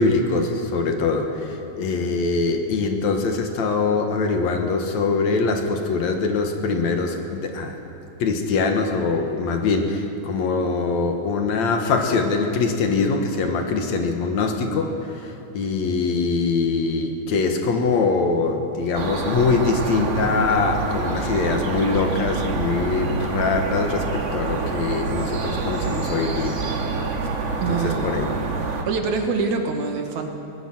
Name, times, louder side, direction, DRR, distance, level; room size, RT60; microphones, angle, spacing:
voice 1, 0.0-7.8 8.2-26.6 26.9-27.1 27.7-28.3, left 4 dB, 70° left, 4 dB, 2.7 m, -23 dB
sound 1, 18.9-28.8, right 4 dB, 45° right, 2.1 m, -27 dB
voice 2, 27.6-28.1 28.9-30.3, right 4 dB, 75° right, 4 dB, 2.9 m, -25 dB
23.0 x 19.0 x 6.1 m, 2.9 s
omnidirectional pair, 3.4 m